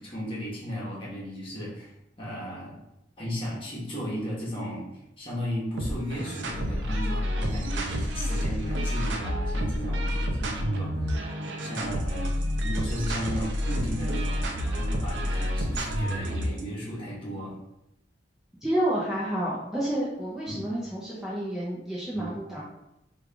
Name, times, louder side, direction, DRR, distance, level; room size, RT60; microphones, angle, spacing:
voice 1, 0.0-1.9 2.2-2.7 3.2-4.9 5.2-11.2 11.6-17.5 20.5-20.6 22.1-22.3, equal, 30° left, -6 dB, 1.2 m, -35 dB
sound 1, 5.8-16.6, equal, 85° right, 0.5 m, -29 dB
voice 2, 18.6-22.6, right 1 dB, 5° right, -8 dB, 0.5 m, -29 dB
3.3 x 2.4 x 3.3 m, 0.87 s
head